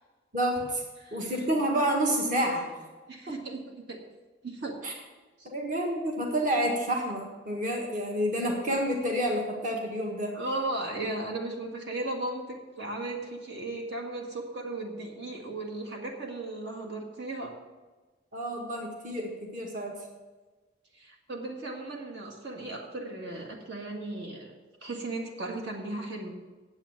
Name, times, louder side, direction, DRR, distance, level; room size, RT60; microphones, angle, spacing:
voice 1, 0.3-0.8 1.1-2.7 4.8-4.9 5.4-10.3 18.3-19.9, right 1 dB, 45° right, 0 dB, 1.7 m, -29 dB
voice 2, 3.1-4.0 4.4-4.7 5.4-5.5 10.3-17.5 20.9-24.5 24.8-26.4, right 2 dB, 65° right, 0 dB, 1.8 m, -36 dB
9.0 x 8.3 x 7.1 m, 1.3 s
head